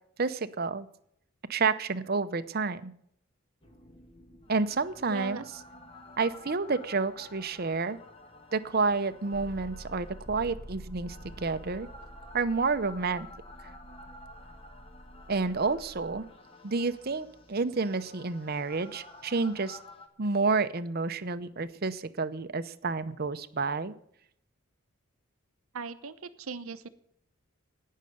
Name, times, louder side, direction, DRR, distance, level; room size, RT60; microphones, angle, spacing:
voice 1, 0.2-0.9 1.5-2.9 4.5-5.6 6.2-8.0 8.5-11.9 12.3-13.3 15.3-16.3 16.6-19.8 20.2-23.9, right 4 dB, 45° right, 12 dB, 0.7 m, -30 dB
sound 1, 3.6-20.1, left 1 dB, 25° left, 1.4 m, -48 dB
voice 2, 5.1-5.4 25.7-26.9, right 4 dB, 75° right, 9 dB, 0.8 m, -38 dB
18.0 x 6.6 x 6.6 m, 0.72 s
head